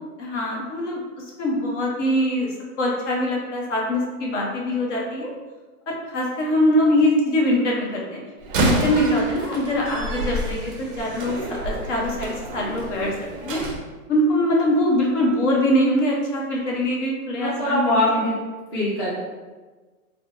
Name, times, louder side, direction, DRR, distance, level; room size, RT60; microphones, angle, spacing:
voice 1, 0.2-5.3 5.9-8.2 8.6-11.4 11.6-13.1 13.4-13.6 14.1-18.1, left 1 dB, 55° left, -2 dB, 0.9 m, -23 dB
Slam, 8.4-13.8, right 2 dB, 40° right, 0.4 m, -28 dB
voice 2, 17.4-18.4 18.7-19.1, left 1 dB, 20° left, -9 dB, 0.4 m, -22 dB
3.3 x 2.0 x 2.6 m, 1.3 s
hypercardioid pair, 150°, 43 cm